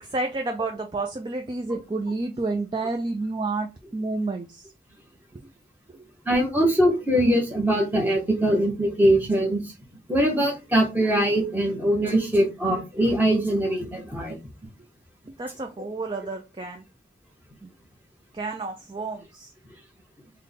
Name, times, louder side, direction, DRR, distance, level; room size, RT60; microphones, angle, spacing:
voice 1, 0.0-4.7 5.3-5.5 5.9-6.1 14.2-14.3 15.3-16.8 17.6-17.7 18.3-19.5, right 3 dB, 25° right, 0.3 m, -30 dB
voice 2, 6.2-9.7 10.1-14.4, right 1 dB, 10° right, 1.0 m, -22 dB
3.4 x 2.2 x 3.9 m
head